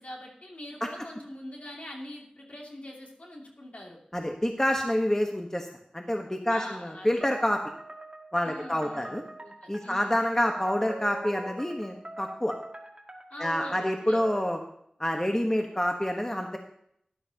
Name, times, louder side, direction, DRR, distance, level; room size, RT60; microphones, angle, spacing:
voice 1, 0.0-4.0 6.5-7.3 8.4-10.2 13.3-14.2, left 1 dB, 60° left, -1 dB, 2.4 m, -43 dB
voice 2, 4.1-5.7 5.9-7.6 8.3-9.2 9.7-12.5 13.4-14.6 15.0-16.6, equal, 20° left, 3 dB, 1.1 m, -27 dB
sound 1, 7.2-14.6, right 2 dB, 35° right, 1.9 m, -43 dB
12.5 x 11.0 x 2.8 m, 0.70 s
wide cardioid pair, 45°, 3 cm